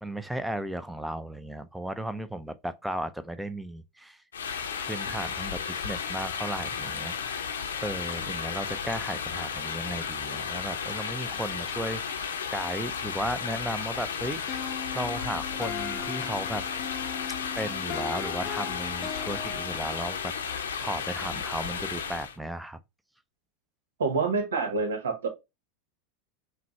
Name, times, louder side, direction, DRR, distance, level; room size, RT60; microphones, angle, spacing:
voice 1, 0.0-4.2 4.9-7.1 7.8-14.4 14.9-16.6 17.6-22.8, right 1 dB, 5° right, 0.5 m, -35 dB
sound 1, 4.3-22.4, left 6 dB, 80° left, 0.7 m, -34 dB
sound 2, 14.5-20.3, left 7 dB, 35° left, 0.7 m, -38 dB
voice 2, 24.0-25.3, right 4 dB, 75° right, 1.2 m, -27 dB
5.8 x 2.3 x 3.1 m
hypercardioid pair, 90°, 0 cm